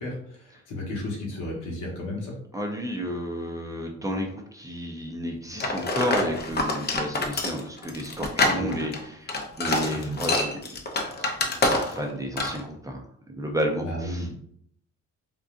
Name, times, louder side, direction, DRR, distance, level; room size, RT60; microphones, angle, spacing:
voice 1, 0.0-2.3 8.5-8.8 9.9-10.2 13.8-14.3, left 1 dB, 85° left, -2 dB, 1.2 m, -33 dB
voice 2, 2.5-10.6 11.6-13.0 13.3-14.3, equal, 10° right, 1 dB, 0.5 m, -32 dB
sound 1, 5.6-12.1 12.4-12.6, left 2 dB, 35° left, 0.6 m, -26 dB
3.7 x 2.4 x 2.5 m, 0.67 s
cardioid pair, 90°, 30 cm